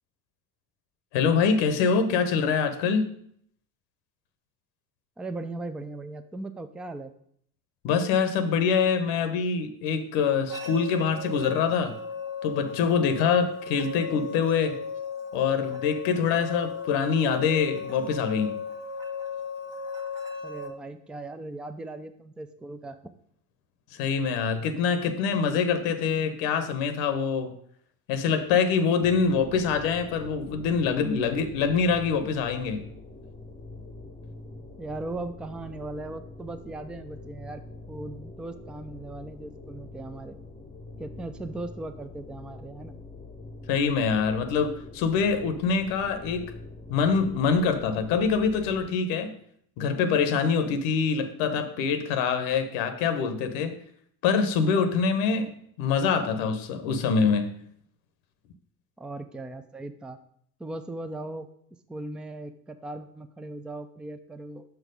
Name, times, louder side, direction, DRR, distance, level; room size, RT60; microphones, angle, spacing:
voice 1, 1.1-3.1 7.8-12.0 12.4-14.8 15.3-18.5 24.0-27.6 28.1-32.9 43.7-46.5 46.9-49.3 49.8-53.8 54.2-57.5, left 5 dB, 70° left, 0.8 m, -25 dB
voice 2, 5.2-7.1 20.4-23.0 34.8-37.6 37.9-40.4 41.0-43.0 59.0-60.2 60.6-61.5 61.9-64.6, right 2 dB, ahead, 0.3 m, -38 dB
sound 1, 10.5-20.7, left 5 dB, 40° right, 1.2 m, -36 dB
sound 2, 29.0-48.9, left 3 dB, 15° left, 0.8 m, -44 dB
5.9 x 4.6 x 5.1 m
hypercardioid pair, 65°, 49 cm